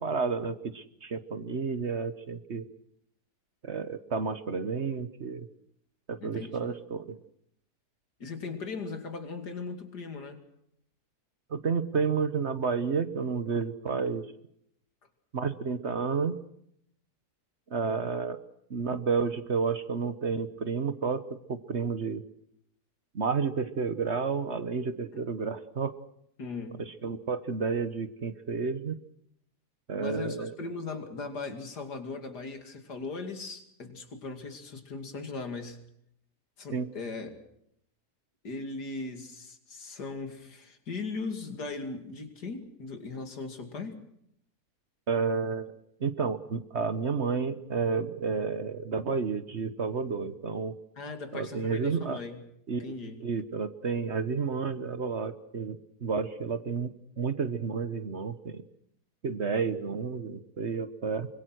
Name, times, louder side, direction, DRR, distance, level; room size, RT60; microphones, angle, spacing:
voice 1, 0.0-2.7 3.6-5.5 6.1-7.2 11.5-14.2 15.3-16.3 17.7-18.4 18.7-21.2 21.5-22.2 23.1-25.9 26.9-28.9 29.9-30.5 36.7-36.9 45.1-45.7 46.0-50.7 51.3-52.2 52.7-52.8 53.2-58.6 59.2-61.3, right 5 dB, 45° right, 12 dB, 1.3 m, -31 dB
voice 2, 6.2-6.7 8.2-10.4 25.1-25.2 26.4-26.8 30.0-35.8 36.6-37.4 38.4-44.0 51.0-52.4 52.7-53.2, left 3 dB, 80° left, 6 dB, 3.1 m, -38 dB
25.0 x 21.5 x 6.3 m, 0.73 s
omnidirectional pair, 1.7 m